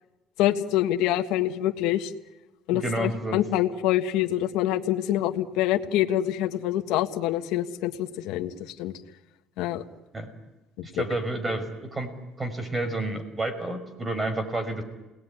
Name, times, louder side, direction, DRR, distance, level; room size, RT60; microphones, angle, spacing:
voice 1, 0.4-2.1 2.7-8.9 9.6-9.8, left 12 dB, 85° left, 6 dB, 1.6 m, -26 dB
voice 2, 2.7-3.4 10.1-10.3 10.8-12.1 12.4-14.8, right 2 dB, 20° right, 9 dB, 5.4 m, -30 dB
28.5 x 19.5 x 9.9 m, 1.1 s
cardioid pair, 115°, 0 cm